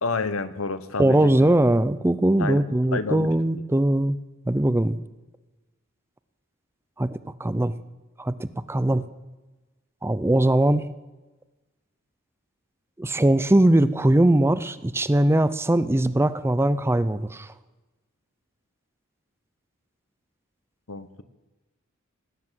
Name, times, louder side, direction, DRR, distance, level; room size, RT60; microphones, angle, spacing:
voice 1, 0.0-1.5 2.4-2.6 2.9-3.3 3.5-3.6 20.9-21.2, left 3 dB, 75° left, 13 dB, 1.0 m, -29 dB
voice 2, 1.0-4.2 4.5-5.0 7.0-7.7 8.2-9.0 10.0-10.8 13.0-17.5, right 1 dB, 10° right, 15 dB, 0.5 m, -21 dB
18.5 x 9.9 x 7.5 m, 1.1 s
head